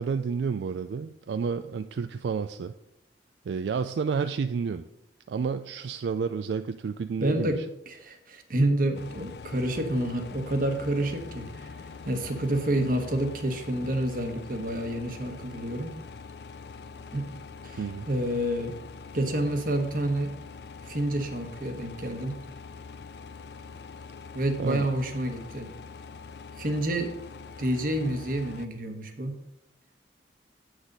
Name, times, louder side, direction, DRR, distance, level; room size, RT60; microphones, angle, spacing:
voice 1, 0.0-2.7 3.5-4.8 5.3-7.6 17.8-18.1 24.6-24.9, right 5 dB, 80° right, 10 dB, 0.3 m, -30 dB
voice 2, 7.2-7.6 7.9-15.9 17.1-17.3 17.6-18.8 19.1-20.3 20.8-22.4 24.3-25.7 26.6-27.1 27.6-29.4, right 1 dB, 50° right, 6 dB, 1.2 m, -29 dB
sound 1, 8.9-28.7, left 5 dB, 65° left, 0.5 m, -44 dB
8.0 x 6.3 x 5.3 m, 0.84 s
head